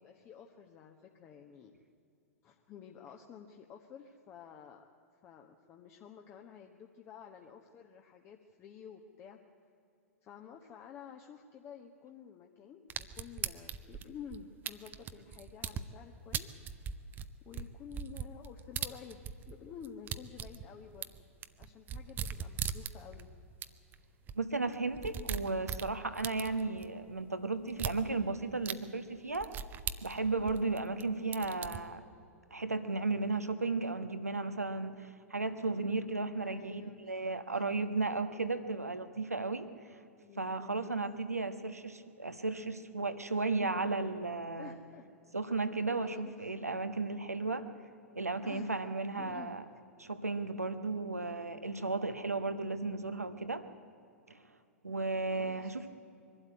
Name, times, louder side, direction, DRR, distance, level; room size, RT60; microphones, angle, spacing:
voice 1, 0.0-1.7 2.4-4.9 5.2-9.4 10.2-16.5 17.4-21.3 21.6-23.3 36.4-37.3 40.2-41.0 44.6-45.1 45.9-46.7 48.4-49.6 55.3-55.9, left 7 dB, 30° left, 2 dB, 1.2 m, -51 dB
sound 1, 12.9-15.8 16.3-19.5 19.8-23.2 23.6-23.7 23.9-24.0 24.3-24.4 24.7-26.9 27.7-28.0 28.6-28.7 29.3-31.0 31.3-31.8, right 8 dB, 25° right, 0.7 m, -39 dB
voice 2, 24.3-29.5 30.0-32.0 32.5-39.7 40.4-44.8 45.3-47.7 48.1-49.6 50.0-53.7 54.3-54.4 54.8-55.9, right 3 dB, 85° right, 10 dB, 1.2 m, -34 dB
23.0 x 12.5 x 9.6 m, 2.6 s
figure-of-eight pair, 105°, 8 cm